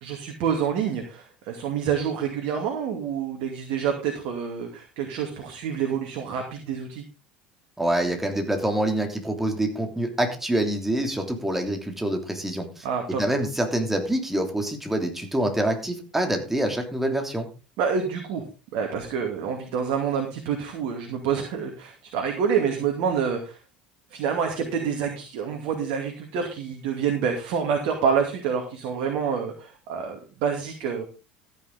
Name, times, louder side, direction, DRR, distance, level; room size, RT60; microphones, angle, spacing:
voice 1, 0.0-7.0 12.8-13.2 17.8-18.4 18.7-23.6 24.1-31.0, right 7 dB, 55° right, 3 dB, 2.4 m, -27 dB
voice 2, 7.8-12.9 13.2-17.5, right 1 dB, 5° right, 4 dB, 3.0 m, -26 dB
14.0 x 9.3 x 3.9 m, 0.32 s
figure-of-eight pair, 65°, 5 cm